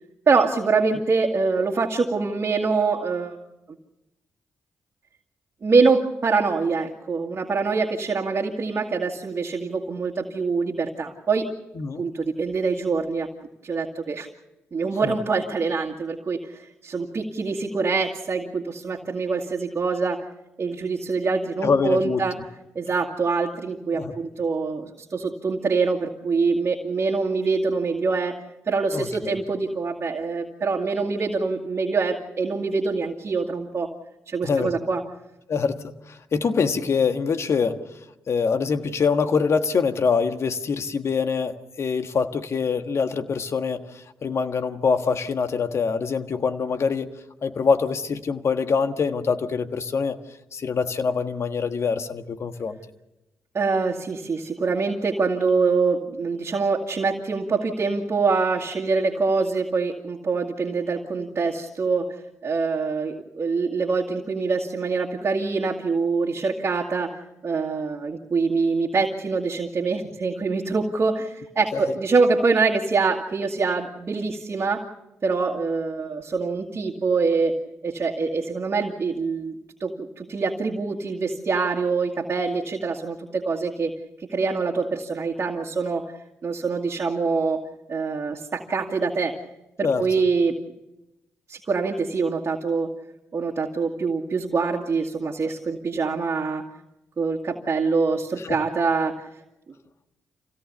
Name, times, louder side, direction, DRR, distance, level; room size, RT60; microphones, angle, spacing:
voice 1, 0.3-3.4 5.6-11.5 12.0-13.3 13.6-14.3 14.7-20.2 20.6-22.4 22.8-33.9 34.3-35.0 53.5-74.9 75.2-79.5 79.8-83.9 84.3-86.1 86.4-87.6 87.9-89.3 89.8-90.6 91.5-92.9 93.3-96.7 97.2-99.3, right 4 dB, 45° right, -1 dB, 2.1 m, -24 dB
voice 2, 11.8-12.1 15.0-15.1 21.6-22.2 23.9-24.1 28.9-29.3 34.4-34.7 35.5-37.8 38.3-47.1 47.4-50.2 50.5-52.8 89.8-90.1 98.4-98.6, left 5 dB, 60° left, 8 dB, 1.5 m, -24 dB
26.0 x 17.0 x 6.8 m, 0.94 s
supercardioid pair, 45°, 5 cm